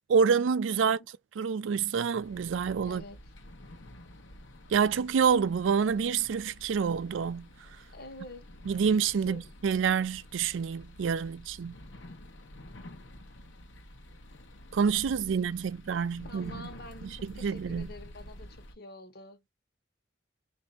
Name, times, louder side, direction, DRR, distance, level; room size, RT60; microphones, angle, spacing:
voice 1, 0.1-1.0 1.4-3.0 4.7-7.5 8.7-11.7 14.7-16.5 17.4-17.9, right 6 dB, 85° right, 0.4 m, -27 dB
sound 1, 2.2-18.7, left 1 dB, 80° left, 0.9 m, -49 dB
voice 2, 2.8-3.2 7.9-8.4 9.2-9.5 16.2-19.5, left 1 dB, 55° left, 1.1 m, -47 dB
3.3 x 2.6 x 4.1 m
head